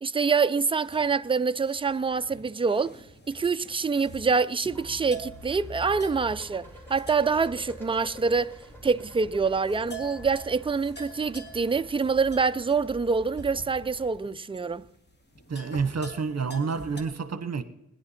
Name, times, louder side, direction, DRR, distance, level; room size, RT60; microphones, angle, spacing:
voice 1, 0.0-3.0 3.3-8.5 8.8-14.8, right 5 dB, 20° right, 0.4 m, -26 dB
sound 1, 0.8-17.0, right 1 dB, 35° left, 2.0 m, -47 dB
sound 2, 4.7-14.1, equal, 5° left, 4.3 m, -46 dB
voice 2, 15.5-17.6, right 5 dB, 60° right, 1.1 m, -29 dB
20.0 x 10.5 x 4.3 m
wide cardioid pair, 90°, 30 cm